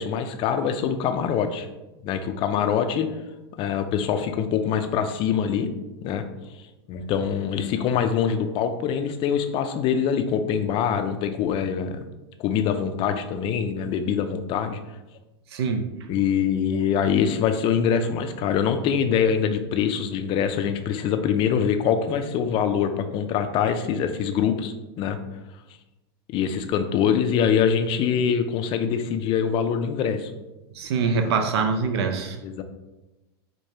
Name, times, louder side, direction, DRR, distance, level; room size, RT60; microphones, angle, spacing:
voice 1, 0.0-1.7 2.0-3.1 3.6-5.7 6.0-6.2 6.9-12.0 12.4-14.8 16.1-25.2 26.3-30.3 31.2-31.3 32.4-32.6, left 7 dB, 40° left, 8 dB, 0.4 m, -24 dB
voice 2, 15.5-15.8 30.7-32.4, right 5 dB, 75° right, 6 dB, 0.5 m, -24 dB
4.6 x 2.2 x 2.8 m, 1.0 s
hypercardioid pair, 115°, 14 cm